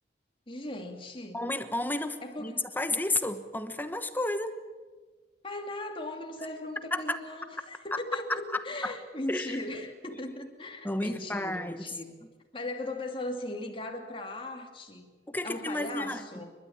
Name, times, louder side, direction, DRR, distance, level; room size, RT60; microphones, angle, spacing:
voice 1, 0.5-1.4 2.2-2.8 5.4-12.1 12.5-15.2 15.4-16.5, left 1 dB, 30° left, 3 dB, 2.7 m, -38 dB
voice 2, 1.3-4.6 6.9-7.2 7.9-9.0 9.3-9.6 10.1-10.2 10.8-11.9 15.3-16.5, left 2 dB, 10° left, 9 dB, 1.1 m, -32 dB
29.0 x 13.0 x 8.9 m, 1.4 s
head